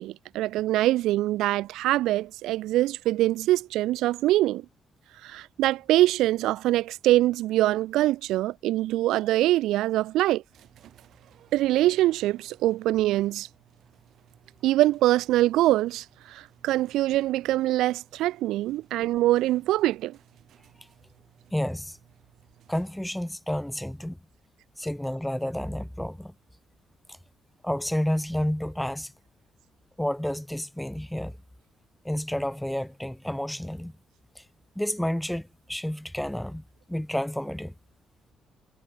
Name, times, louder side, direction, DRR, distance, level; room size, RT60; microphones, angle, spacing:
voice 1, 0.0-4.7 5.2-10.4 11.5-13.5 14.6-20.2, right 15 dB, 90° right, 0.4 m, -24 dB
sound 1, 10.5-23.3, right 11 dB, 75° right, 7.1 m, -59 dB
voice 2, 21.5-22.0 22.7-24.2 24.8-26.3 27.1-27.2 27.6-29.1 30.0-31.3 32.0-33.9 34.4-34.5 34.8-36.6 36.9-37.7, left 1 dB, 5° left, 0.5 m, -30 dB
cardioid pair, 90°, 0 cm